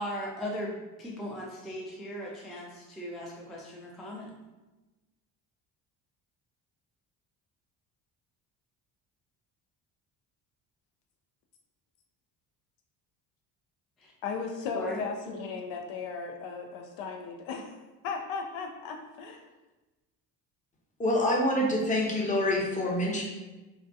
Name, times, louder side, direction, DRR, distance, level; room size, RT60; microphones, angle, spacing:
voice 1, 0.0-4.3 14.0-14.1 14.7-15.0, equal, ahead, -3 dB, 0.3 m, -37 dB
voice 2, 14.2-17.8 18.0-19.4, left 5 dB, 70° left, 4 dB, 0.5 m, -36 dB
voice 3, 21.0-23.2, left 1 dB, 15° left, -2 dB, 0.7 m, -26 dB
2.4 x 2.2 x 2.5 m, 1.1 s
hypercardioid pair, 60°, 48 cm